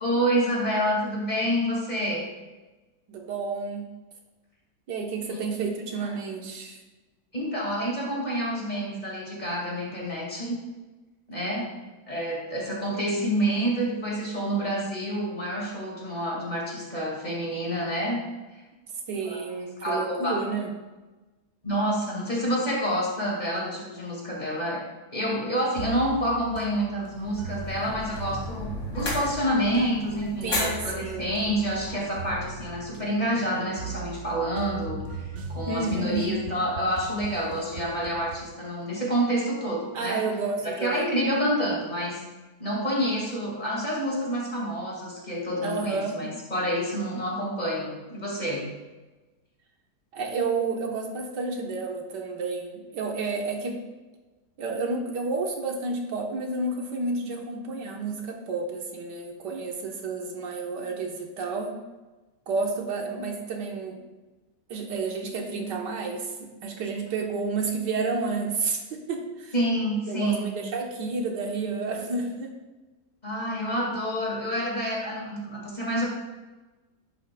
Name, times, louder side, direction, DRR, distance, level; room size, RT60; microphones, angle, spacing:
voice 1, 0.0-2.3 5.3-5.4 7.3-10.6 11.3-11.7 12.1-18.3 18.5-18.6 19.3-19.4 19.8-20.3 21.6-24.8 25.1-40.2 40.6-42.2 42.6-48.7 69.5-70.5 73.2-76.0, equal, 25° left, -3 dB, 2.1 m, -28 dB
voice 2, 3.1-3.9 4.9-6.8 19.1-20.7 30.4-31.4 35.7-36.3 39.9-41.1 45.6-46.2 50.1-53.8 54.6-61.7 62.5-64.0 64.7-69.5 70.1-72.5, right 4 dB, 85° right, 1 dB, 1.8 m, -30 dB
sound 1, 25.8-38.5, right 4 dB, 55° right, 0.9 m, -39 dB
sound 2, 27.1-32.5, left 2 dB, 65° left, 2.7 m, -36 dB
11.0 x 8.1 x 2.3 m, 1.2 s
omnidirectional pair, 1.8 m